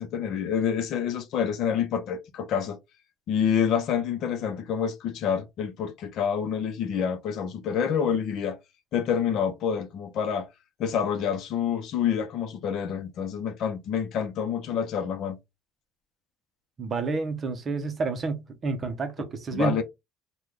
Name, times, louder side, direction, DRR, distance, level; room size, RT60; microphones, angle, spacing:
voice 1, 0.0-2.8 3.3-8.6 8.9-10.5 10.8-15.4 19.5-19.8, left 7 dB, 55° left, 0.6 m, -27 dB
voice 2, 16.8-19.8, right 4 dB, 30° right, 0.7 m, -29 dB
3.7 x 2.2 x 3.1 m
cardioid pair, 155°, 0 cm